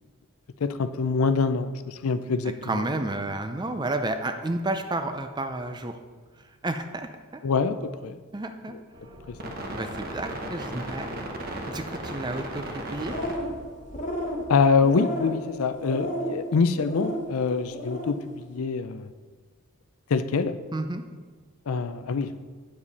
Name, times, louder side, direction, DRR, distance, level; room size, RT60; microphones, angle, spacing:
voice 1, 0.6-2.8 7.4-8.2 9.3-9.6 14.5-19.1 20.1-20.6 21.7-22.4, left 4 dB, 80° left, 12 dB, 0.5 m, -25 dB
voice 2, 2.6-6.0 6.6-7.1 8.3-8.7 9.7-11.1 11.7-13.2 20.7-21.0, right 2 dB, 20° right, 8 dB, 0.5 m, -31 dB
sound 1, 8.9-15.5 15.8-15.9, right 1 dB, 45° right, 1.0 m, -37 dB
sound 2, 12.9-13.6 13.9-14.4 14.8-15.4 15.9-16.4 16.8-17.2 17.6-18.1, equal, 35° left, 1.2 m, -32 dB
8.9 x 7.5 x 4.1 m, 1.5 s
head